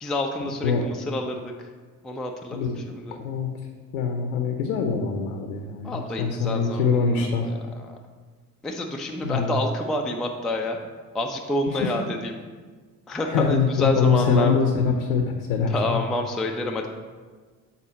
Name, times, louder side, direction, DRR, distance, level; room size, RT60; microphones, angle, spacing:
voice 1, 0.0-1.5 2.0-3.2 5.8-7.9 8.6-10.8 11.1-12.3 13.1-14.6 15.7-16.9, left 1 dB, ahead, 1 dB, 0.4 m, -28 dB
voice 2, 3.9-7.5 9.2-9.6 11.8-11.9 13.3-15.2 15.5-16.0, left 5 dB, 70° left, 4 dB, 0.7 m, -23 dB
7.2 x 4.1 x 4.0 m, 1.5 s
figure-of-eight pair, 50°, 45 cm